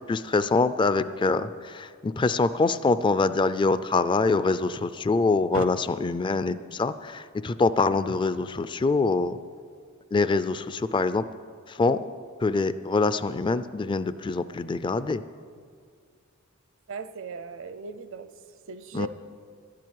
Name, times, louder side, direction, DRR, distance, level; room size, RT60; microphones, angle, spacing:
voice 1, 0.1-1.5 1.7-9.4 10.1-11.2 11.8-12.0 12.4-15.2 18.9-19.1, left 3 dB, 20° left, 14 dB, 0.3 m, -24 dB
voice 2, 16.9-18.3 18.7-19.1, right 4 dB, 65° right, 12 dB, 0.7 m, -36 dB
12.5 x 7.6 x 9.7 m, 2.1 s
head